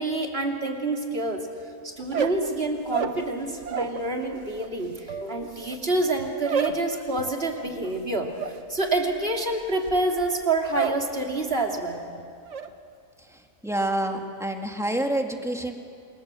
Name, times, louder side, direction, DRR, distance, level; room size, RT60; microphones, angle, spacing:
voice 1, 0.0-1.5 1.8-12.0, right 2 dB, 45° right, 1 dB, 3.3 m, -27 dB
sound 1, 2.0-4.0 4.3-11.1 11.4-11.9 12.2-12.7, right 6 dB, 65° right, 1.6 m, -31 dB
voice 2, 13.6-15.7, right 1 dB, ahead, 3 dB, 2.2 m, -27 dB
28.5 x 27.0 x 7.7 m, 2.4 s
omnidirectional pair, 1.4 m